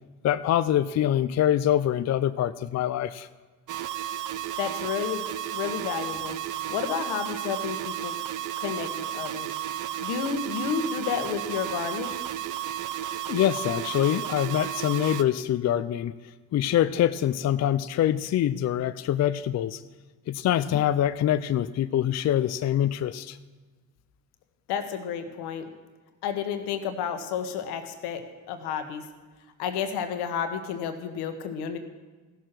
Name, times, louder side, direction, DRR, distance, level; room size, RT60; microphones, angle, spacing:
voice 1, 0.2-3.3 13.3-16.1 16.5-19.8 20.3-23.4, left 11 dB, 45° left, 13 dB, 0.5 m, -24 dB
sound 1, 3.7-15.2, right 12 dB, 50° right, 0.7 m, -33 dB
voice 2, 4.6-6.4 6.7-8.1 8.6-9.5 10.0-12.1 24.7-25.7 26.2-29.0 29.6-31.8, left 7 dB, 80° left, 8 dB, 1.3 m, -31 dB
15.0 x 6.7 x 6.0 m, 1.3 s
supercardioid pair, 65°, 39 cm